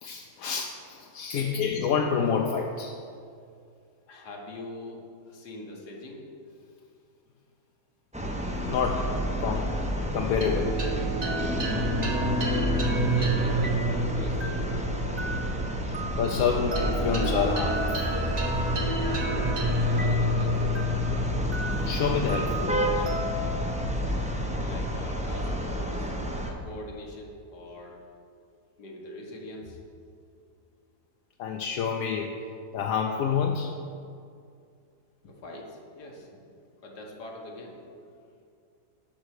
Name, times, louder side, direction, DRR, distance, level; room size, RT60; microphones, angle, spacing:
voice 1, 0.0-2.9 8.6-9.1 9.4-9.6 10.1-10.7 16.2-18.0 21.9-23.0 31.4-32.3 32.7-33.7, left 6 dB, 65° left, 1 dB, 1.0 m, -28 dB
voice 2, 1.3-1.7 4.1-6.5 12.8-14.9 19.8-21.0 24.6-26.1 26.5-28.0 28.8-29.8 35.2-36.4 36.8-37.8, left 1 dB, 85° left, 0 dB, 1.9 m, -42 dB
sound 1, 8.1-26.5, equal, 5° right, 0.5 m, -30 dB
sound 2, 10.4-25.1, equal, 30° right, 1.0 m, -30 dB
10.5 x 5.6 x 6.5 m, 2.4 s
omnidirectional pair, 1.7 m